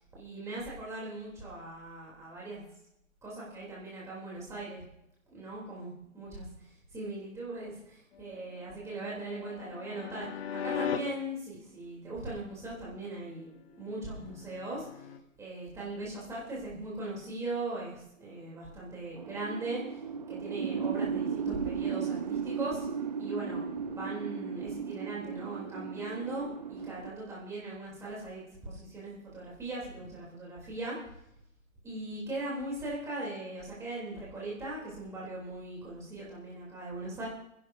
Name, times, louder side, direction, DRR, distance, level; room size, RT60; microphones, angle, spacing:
voice 1, 0.0-2.6 3.2-4.8 5.3-14.9 15.4-20.0 20.3-22.9 23.2-23.6 23.9-31.0 31.8-37.3, right 2 dB, 5° right, -6 dB, 3.4 m, -39 dB
sound 1, 8.1-11.0 13.9-15.2, left 8 dB, 45° left, 1.3 m, -39 dB
sound 2, 19.2-27.1, right 6 dB, 30° right, 0.5 m, -35 dB
27.0 x 11.0 x 2.7 m, 0.80 s
hypercardioid pair, 155°, 41 cm